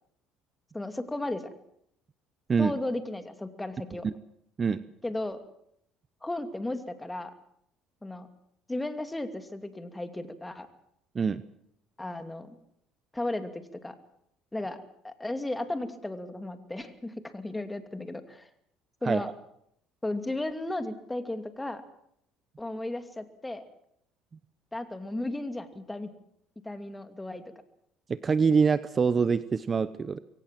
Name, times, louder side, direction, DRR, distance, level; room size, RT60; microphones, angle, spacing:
voice 1, 0.7-1.4 2.6-4.0 5.0-5.4 6.2-7.3 8.0-8.3 8.7-10.7 12.0-12.6 13.1-14.0 14.5-14.8 15.0-18.5 19.0-19.3 20.0-21.8 22.6-23.6 24.7-26.1 26.6-27.4, left 2 dB, 10° left, 9 dB, 2.6 m, -34 dB
voice 2, 28.2-30.2, right 5 dB, 30° right, 15 dB, 0.9 m, -25 dB
23.0 x 17.5 x 7.6 m, 0.71 s
supercardioid pair, 95°, 0 cm